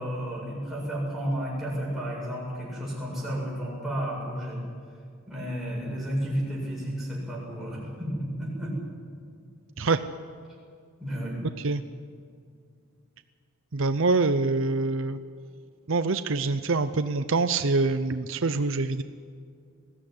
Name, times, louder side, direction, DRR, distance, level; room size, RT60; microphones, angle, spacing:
voice 1, 0.0-4.6 5.3-8.8 9.7-9.8 11.0-11.4, equal, ahead, -6 dB, 7.9 m, -32 dB
voice 2, 13.7-15.2 15.9-19.0, right 3 dB, 60° right, 10 dB, 0.6 m, -25 dB
21.0 x 16.0 x 9.7 m, 2.2 s
head